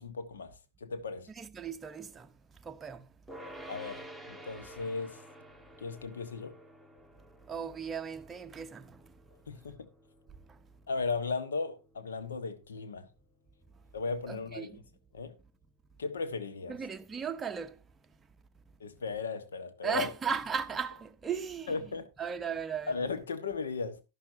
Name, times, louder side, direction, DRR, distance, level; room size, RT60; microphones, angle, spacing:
voice 1, 0.0-1.3 3.7-5.2 5.8-6.6 9.5-9.9 10.9-13.1 13.9-14.8 15.1-15.4 16.0-16.7 18.8-20.1 21.7-22.1 22.9-24.0, left 4 dB, 65° left, 1.3 m, -36 dB
voice 2, 1.4-2.3 2.6-3.1 7.5-9.0 14.3-14.8 16.7-17.8 19.8-21.8 22.2-23.0, right 6 dB, 15° right, 0.7 m, -36 dB
sound 1, 3.3-14.6, equal, ahead, 1.3 m, -52 dB
11.5 x 11.5 x 2.7 m
figure-of-eight pair, 90°, 0 cm